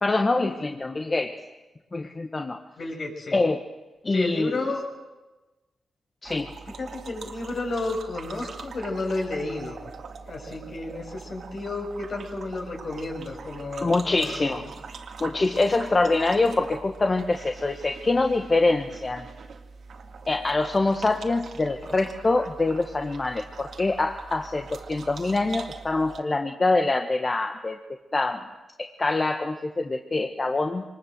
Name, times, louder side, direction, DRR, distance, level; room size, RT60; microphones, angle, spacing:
voice 1, 0.0-1.3 1.9-2.6 3.3-3.6 4.0-4.5 6.2-6.5 13.8-14.6 15.2-19.3 20.3-27.8 28.1-28.4 28.8-30.8, left 3 dB, 35° left, 4 dB, 1.6 m, -24 dB
voice 2, 2.8-3.4 4.1-4.8 6.8-9.9 10.3-14.7, left 2 dB, 60° left, 1 dB, 6.4 m, -32 dB
sound 1, 6.2-26.2, right 5 dB, 70° right, 2.2 m, -42 dB
24.5 x 21.0 x 7.7 m, 1.1 s
cardioid pair, 60°, 0 cm